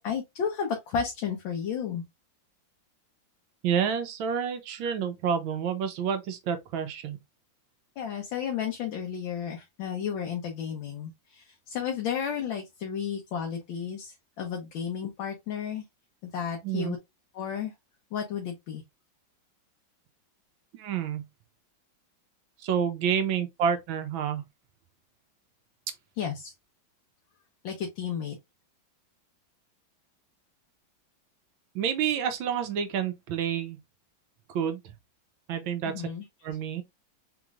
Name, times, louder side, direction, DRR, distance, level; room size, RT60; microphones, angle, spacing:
voice 1, 0.0-2.0 8.0-15.8 16.2-17.0 17.3-17.7 18.1-18.8 26.2-26.5 27.6-28.4 35.8-36.2, left 7 dB, 75° left, 1.6 m, -33 dB
voice 2, 3.6-7.2 16.6-17.0 20.7-21.3 22.6-24.4 31.7-33.8 34.5-34.8 35.5-36.0 36.4-36.8, right 8 dB, 80° right, 1.5 m, -29 dB
4.3 x 3.1 x 2.3 m
omnidirectional pair, 2.1 m